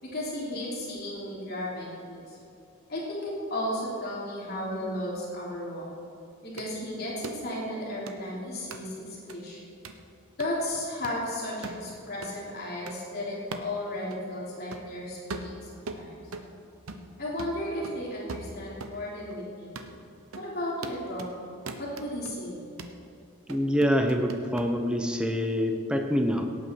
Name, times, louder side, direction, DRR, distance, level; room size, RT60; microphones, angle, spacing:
voice 1, 0.0-2.4 2.9-5.8 6.4-9.6 10.4-16.2 17.2-19.8 20.4-21.3 21.8-22.7, left 1 dB, 45° left, -5 dB, 3.4 m, -34 dB
sound 1, 6.6-6.7 7.2-7.4 8.1-8.2 8.7-8.8 9.3-9.4 9.8-10.0 10.4-10.5 11.0-11.2 11.6-11.8 12.2-12.4 12.9-13.0 13.5-13.7 14.1-14.2 14.7-14.9 15.3-16.5 16.9-17.1 17.4-19.0 19.3-19.4 19.7-19.9 20.3-20.5 20.8-21.3 21.7-22.3 22.8-23.0 23.5-24.7, right 3 dB, 85° right, 1.0 m, -40 dB
voice 2, 23.5-26.4, equal, 5° right, 3 dB, 0.9 m, -26 dB
17.5 x 9.1 x 4.7 m, 2.8 s
head